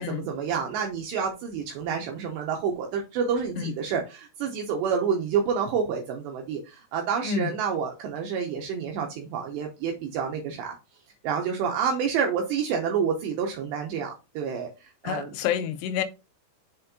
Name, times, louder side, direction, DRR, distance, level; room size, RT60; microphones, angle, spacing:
voice 1, 0.0-10.8 11.2-15.3, right 6 dB, 80° right, 2.8 m, -28 dB
voice 2, 15.0-16.0, left 9 dB, 85° left, 3.1 m, -28 dB
6.8 x 4.2 x 4.1 m
omnidirectional pair, 5.6 m